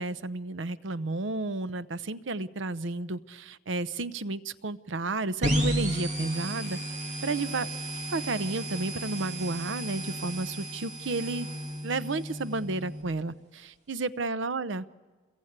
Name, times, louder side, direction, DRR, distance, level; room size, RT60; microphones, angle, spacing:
voice 1, 0.0-6.8 7.2-7.7 8.1-11.5 11.8-14.9, right 3 dB, 85° right, 14 dB, 0.8 m, -32 dB
sound 1, 5.4-13.0, equal, 40° right, 2.8 m, -33 dB
28.0 x 22.0 x 8.8 m, 1.4 s
head